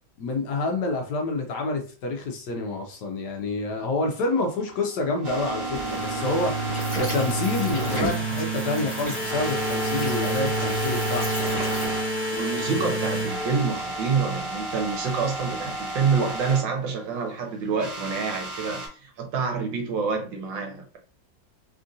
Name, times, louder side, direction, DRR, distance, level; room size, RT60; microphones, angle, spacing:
voice 1, 0.2-6.6 7.0-11.3, left 3 dB, 70° left, 1.1 m, -28 dB
sound 1, 4.1-12.1 12.3-12.4 12.8-12.9 13.2-16.6 17.8-18.9, right 2 dB, 50° right, 1.3 m, -33 dB
sound 2, 5.7-14.1, right 1 dB, 15° right, 0.5 m, -29 dB
sound 3, 6.7-11.9, equal, 20° left, 1.0 m, -35 dB
voice 2, 12.3-21.0, right 5 dB, 75° right, 1.5 m, -27 dB
3.5 x 2.5 x 2.5 m
omnidirectional pair, 2.1 m